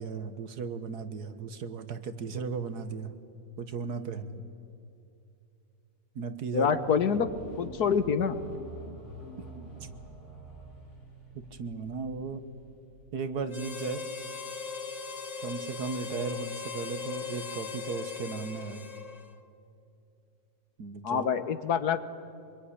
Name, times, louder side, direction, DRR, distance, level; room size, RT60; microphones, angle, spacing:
voice 1, 0.0-3.1 3.6-4.4 6.2-6.7 11.3-12.4 13.1-14.1 15.4-18.9 20.8-21.3, right 5 dB, 75° right, 10 dB, 1.8 m, -36 dB
voice 2, 6.5-7.3 7.6-8.4 21.0-22.0, left 6 dB, 75° left, 12 dB, 1.7 m, -26 dB
sound 1, 6.6-13.3, right 1 dB, 45° left, 4.7 m, -47 dB
Harmonica, 13.5-19.4, left 6 dB, 25° left, 1.1 m, -39 dB
25.0 x 22.0 x 9.9 m, 2.7 s
omnidirectional pair, 1.7 m